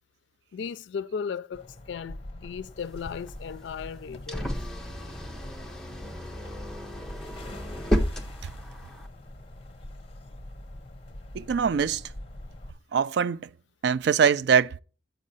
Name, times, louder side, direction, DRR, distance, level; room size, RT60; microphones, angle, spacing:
voice 1, 0.5-4.5, left 6 dB, 75° left, 0.3 m, -36 dB
sound 1, 1.5-12.7, left 1 dB, 30° left, 0.8 m, -44 dB
sound 2, 2.8-9.1, equal, 5° left, 0.7 m, -33 dB
voice 2, 11.3-12.0 12.9-13.5 13.8-14.8, right 7 dB, 65° right, 0.3 m, -23 dB
7.4 x 5.2 x 4.0 m
head